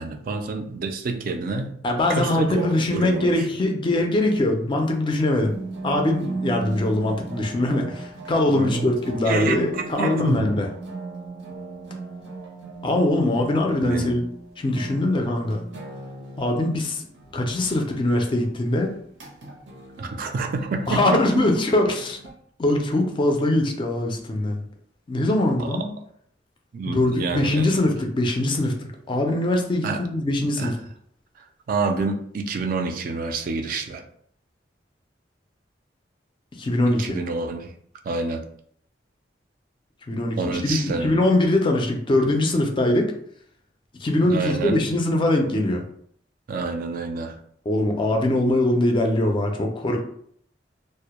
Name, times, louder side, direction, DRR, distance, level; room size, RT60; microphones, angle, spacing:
voice 1, 0.0-1.8 2.1-3.3 8.5-9.0 9.2-10.5 13.8-14.1 20.0-21.4 25.6-25.7 26.7-27.8 29.8-30.0 30.6-30.7 31.4-34.0 36.8-37.7 38.0-38.4 40.4-41.1 44.2-44.9 46.5-47.4, right 3 dB, 50° right, 5 dB, 0.3 m, -28 dB
voice 2, 1.8-5.6 5.8-10.7 12.8-14.2 14.6-15.6 16.4-17.1 17.3-19.0 20.9-22.2 22.6-24.6 25.1-25.9 26.9-30.8 36.6-37.2 40.1-43.1 44.0-45.8 47.7-50.0, left 1 dB, 30° left, 2 dB, 0.3 m, -22 dB
sound 1, 5.5-22.3, right 3 dB, 90° right, 0.6 m, -38 dB
2.1 x 2.0 x 2.9 m, 0.65 s
head